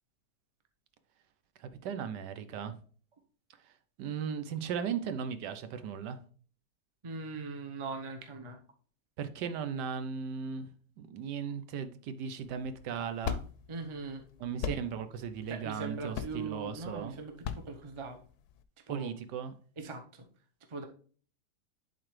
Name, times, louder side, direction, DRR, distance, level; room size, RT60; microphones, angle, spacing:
voice 1, 1.6-2.8 3.6-3.7 4.0-6.2 9.2-10.7 11.0-13.4 14.4-17.1 18.9-19.5, right 7 dB, 80° right, 1.3 m, -37 dB
voice 2, 7.0-8.6 13.7-14.2 15.5-18.2 18.9-19.1 19.8-20.3 20.7-20.8, right 3 dB, 25° right, 0.6 m, -40 dB
sound 1, 12.4-18.6, left 9 dB, 70° left, 1.0 m, -40 dB
11.0 x 4.0 x 3.2 m
omnidirectional pair, 1.8 m